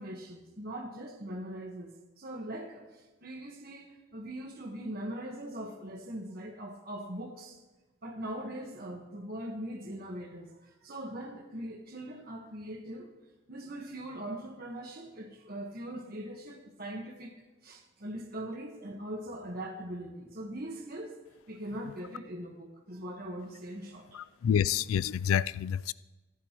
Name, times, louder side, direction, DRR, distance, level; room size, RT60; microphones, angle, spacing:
voice 1, 0.0-7.6 8.0-13.1 13.5-17.3 17.6-21.2 21.5-24.2, right 1 dB, 45° right, 1.4 m, -41 dB
voice 2, 24.4-25.9, left 8 dB, 85° left, 0.3 m, -27 dB
26.0 x 10.0 x 3.0 m
head